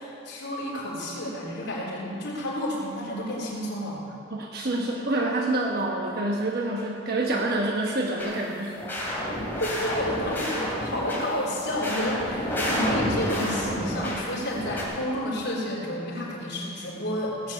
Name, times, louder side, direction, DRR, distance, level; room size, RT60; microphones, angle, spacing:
voice 1, 0.0-4.0 9.6-17.5, equal, 60° left, -5 dB, 4.1 m, -30 dB
voice 2, 4.3-8.8, right 2 dB, 55° right, 0 dB, 1.2 m, -27 dB
sound 1, 8.2-8.4 8.8-11.2 11.6-14.2 14.5-14.8, equal, 10° left, 3.1 m, -30 dB
17.5 x 7.5 x 8.3 m, 2.7 s
head